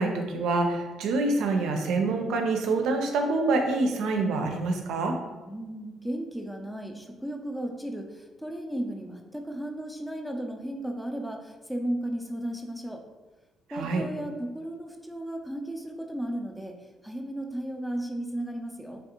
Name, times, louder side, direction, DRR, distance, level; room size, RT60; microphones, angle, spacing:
voice 1, 0.0-5.2 13.7-14.0, right 3 dB, 85° right, 4 dB, 0.4 m, -26 dB
voice 2, 5.5-13.0 13.7-19.0, right 1 dB, 5° left, 2 dB, 0.4 m, -35 dB
3.4 x 2.5 x 2.8 m, 1.2 s
cardioid pair, 95°, 0 cm